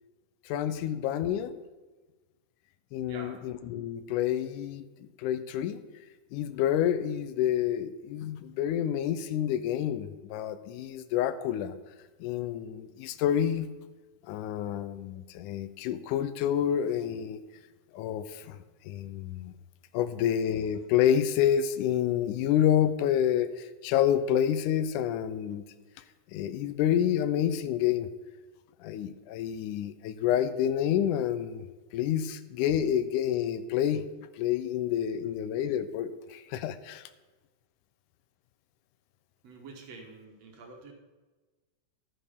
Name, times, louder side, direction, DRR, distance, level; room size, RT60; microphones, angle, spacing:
voice 1, 0.5-1.6 2.9-5.8 6.3-11.8 12.2-13.7 14.3-17.4 17.9-18.6 18.9-19.5 19.9-25.6 26.3-28.1 28.8-31.7 31.9-34.0 34.4-37.0, left 10 dB, 85° left, 13 dB, 2.1 m, -28 dB
voice 2, 3.0-3.4 39.4-40.9, right 3 dB, 65° right, 2 dB, 2.2 m, -47 dB
11.5 x 9.2 x 3.6 m, 1.2 s
omnidirectional pair, 3.5 m